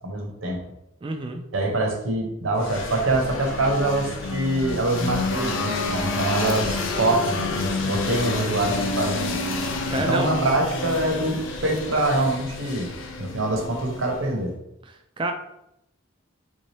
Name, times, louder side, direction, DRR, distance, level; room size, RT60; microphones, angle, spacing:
voice 1, 0.0-0.7 1.5-9.4 10.1-12.9 13.2-14.5, right 2 dB, 80° right, 2 dB, 0.8 m, -25 dB
voice 2, 1.0-1.4 9.9-10.3 14.9-15.3, right 2 dB, 25° right, 4 dB, 0.3 m, -28 dB
sound 1, 2.6-14.3, left 3 dB, 65° left, 0.5 m, -29 dB
3.4 x 2.7 x 3.2 m, 0.82 s
head